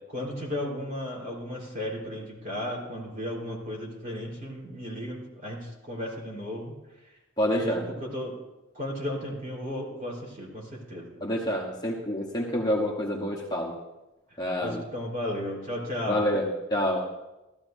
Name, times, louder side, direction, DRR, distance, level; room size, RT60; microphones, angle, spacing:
voice 1, 0.1-6.8 7.5-8.4 8.7-11.1 14.6-16.3, left 1 dB, 40° right, -2 dB, 3.9 m, -34 dB
voice 2, 7.4-7.8 11.2-13.7 14.4-14.8 16.0-17.1, equal, 20° left, -2 dB, 1.1 m, -27 dB
16.5 x 13.5 x 2.6 m, 1.0 s
head